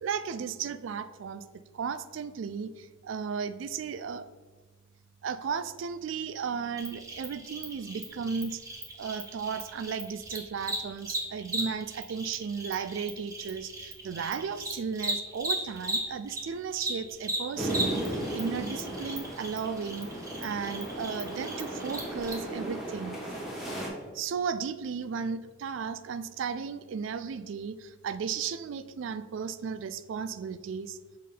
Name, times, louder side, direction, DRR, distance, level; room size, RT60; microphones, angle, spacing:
voice 1, 0.0-1.4 1.7-4.3 5.2-8.6 9.0-20.1 20.4-23.2 24.1-31.0, right 6 dB, 70° right, 13 dB, 0.3 m, -35 dB
Cricket, 6.8-16.4 16.7-22.3, right 2 dB, 15° right, 1.1 m, -36 dB
sound 1, 17.6-23.9, right 1 dB, ahead, 1.4 m, -36 dB
6.5 x 3.7 x 5.4 m, 1.3 s
head